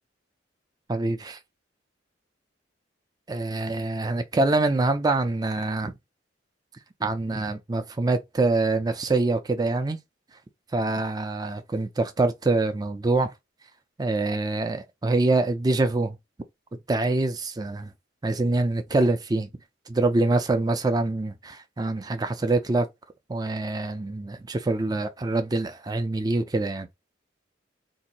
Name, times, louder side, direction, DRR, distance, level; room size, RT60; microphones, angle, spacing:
voice 1, 0.9-1.4 3.3-5.9 7.0-10.0 10.7-13.3 14.0-16.2 16.9-17.9 18.2-19.5 19.9-22.9 23.3-26.9, right 2 dB, 20° right, 0.5 m, -25 dB
2.8 x 2.5 x 4.1 m
head